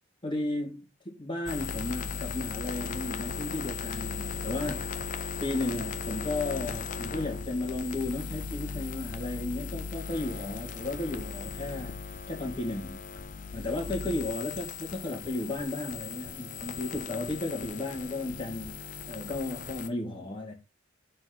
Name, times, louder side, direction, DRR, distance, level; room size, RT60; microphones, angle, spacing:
voice 1, 0.2-5.0 5.4-13.0 13.5-20.5, left 2 dB, 25° left, 2.0 m, -34 dB
sound 1, 1.5-19.9, left 5 dB, 40° left, 0.5 m, -37 dB
4.4 x 4.4 x 5.5 m
head